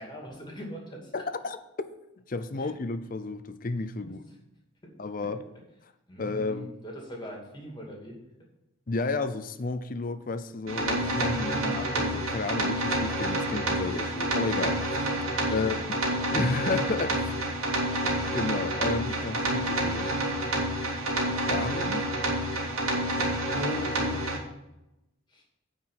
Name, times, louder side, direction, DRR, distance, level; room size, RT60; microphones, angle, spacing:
voice 1, 0.0-1.2 2.6-2.7 4.0-4.2 5.2-5.3 6.1-8.2 11.3-11.8 15.3-15.7 25.3-25.4, equal, 20° left, 2.2 m, -41 dB
voice 2, 1.1-1.6 2.3-4.2 5.0-5.4 6.2-6.8 8.9-15.0 15.5-15.8 16.3-17.5 18.3-20.1 21.5-22.1 23.6-24.4, left 3 dB, 40° left, 0.5 m, -32 dB
sound 1, 10.7-24.4, right 1 dB, 80° right, 2.3 m, -28 dB
9.5 x 4.8 x 7.5 m
head